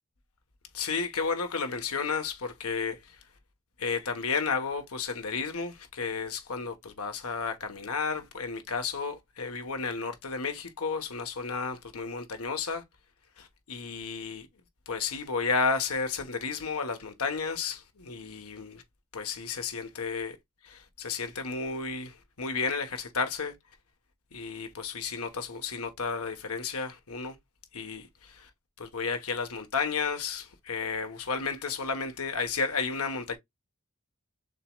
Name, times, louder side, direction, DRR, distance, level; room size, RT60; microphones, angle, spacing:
voice 1, 0.7-3.2 3.8-12.8 13.4-14.5 14.9-18.8 19.1-20.4 20.6-23.5 24.3-27.4 27.7-28.5 28.8-33.4, left 5 dB, 85° left, 1.2 m, -32 dB
6.6 x 3.1 x 2.3 m
head